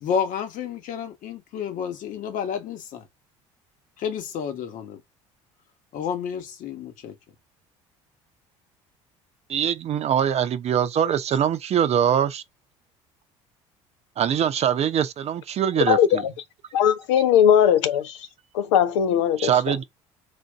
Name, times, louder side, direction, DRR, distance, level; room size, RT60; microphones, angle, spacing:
voice 1, 0.0-3.1 4.0-5.0 5.9-7.2, left 7 dB, 60° left, 1.2 m, -30 dB
voice 2, 9.5-12.4 14.2-16.2 19.4-19.8, right 9 dB, 45° right, 0.6 m, -23 dB
voice 3, 15.9-16.2 16.7-18.2 18.5-19.5, left 9 dB, 80° left, 0.5 m, -19 dB
3.8 x 2.6 x 3.6 m
hypercardioid pair, 65°, 15 cm